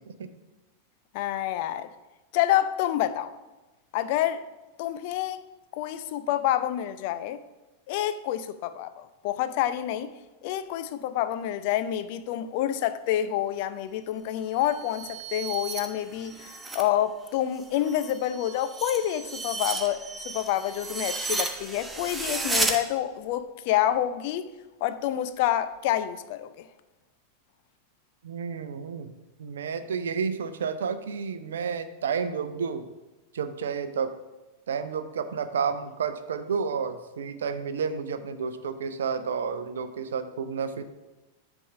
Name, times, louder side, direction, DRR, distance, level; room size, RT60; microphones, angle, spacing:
voice 1, 1.1-1.9 2.3-3.3 3.9-4.4 4.8-5.4 5.7-7.4 7.9-10.1 10.4-24.5 24.8-26.7, left 12 dB, 45° left, 0.4 m, -28 dB
sound 1, 14.5-16.9 17.2-22.8, right 3 dB, 10° right, 0.9 m, -33 dB
voice 2, 28.2-29.1 29.4-32.9 33.3-34.1 34.7-40.8, right 6 dB, 65° right, 0.5 m, -31 dB
8.3 x 3.5 x 5.5 m
figure-of-eight pair, 90°, 0 cm